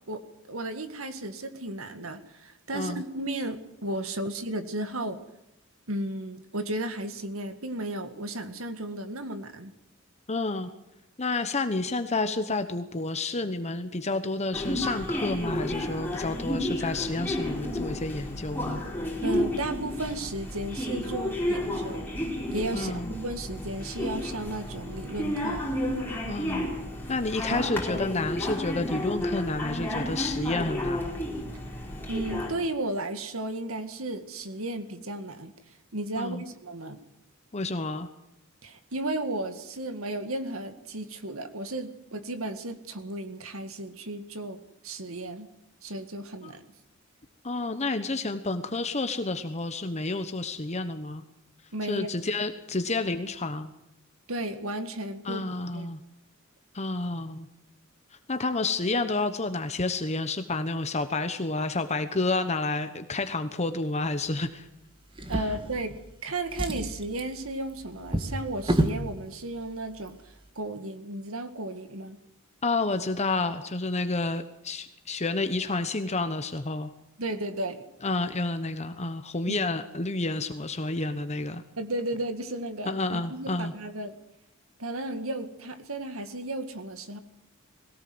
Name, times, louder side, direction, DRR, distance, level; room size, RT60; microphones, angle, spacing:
voice 1, 0.5-5.2 5.9-9.7 19.2-22.1 22.5-25.7 32.1-35.5 35.9-37.0 38.6-44.6 44.8-45.5 45.8-46.6 51.7-52.1 54.3-55.4 55.7-55.9 65.3-66.0 66.2-72.2 77.2-77.8 79.5-79.6 81.8-84.1 84.8-87.2, right 1 dB, 85° right, 9 dB, 2.0 m, -34 dB
voice 2, 10.3-10.7 11.2-18.8 22.7-23.1 26.3-26.7 27.1-31.1 36.2-36.4 37.5-38.1 46.4-46.5 47.4-51.2 51.8-53.7 55.2-56.0 56.7-57.5 58.3-64.7 65.3-65.5 72.6-76.9 78.0-81.6 82.9-83.7, left 3 dB, 35° left, 8 dB, 1.1 m, -30 dB
sound 1, 14.5-32.5, left 1 dB, 10° left, 4.8 m, -32 dB
Drawer open or close, 65.1-66.1 66.4-69.1 69.9-70.1 70.5-70.6, right 1 dB, 25° right, 2.0 m, -30 dB
21.0 x 18.0 x 7.9 m, 0.85 s
head